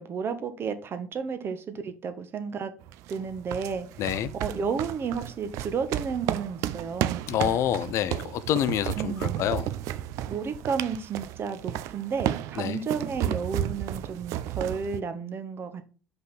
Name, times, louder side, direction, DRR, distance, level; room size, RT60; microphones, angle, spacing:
voice 1, 0.0-2.7 3.1-3.9 4.4-7.2 8.9-9.4 10.3-16.0, right 6 dB, 40° right, 1.2 m, -32 dB
sound 1, 2.8-15.0, right 12 dB, 55° right, 0.5 m, -33 dB
voice 2, 4.0-4.3 7.3-9.7 12.6-12.8, left 10 dB, 50° left, 0.5 m, -27 dB
6.0 x 5.4 x 4.1 m
figure-of-eight pair, 60°, 6 cm